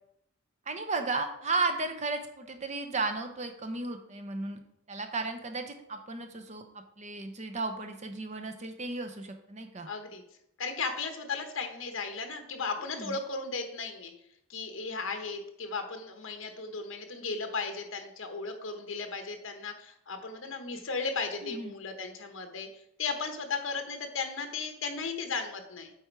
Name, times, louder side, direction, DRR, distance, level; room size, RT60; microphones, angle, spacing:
voice 1, 0.7-4.6 4.9-9.9 12.9-13.2 21.4-21.8, right 3 dB, 35° right, 7 dB, 0.8 m, -34 dB
voice 2, 9.9-10.2 10.6-14.1 14.5-22.7 23.0-25.9, left 4 dB, 65° left, 5 dB, 1.1 m, -35 dB
8.2 x 4.4 x 4.6 m, 0.79 s
head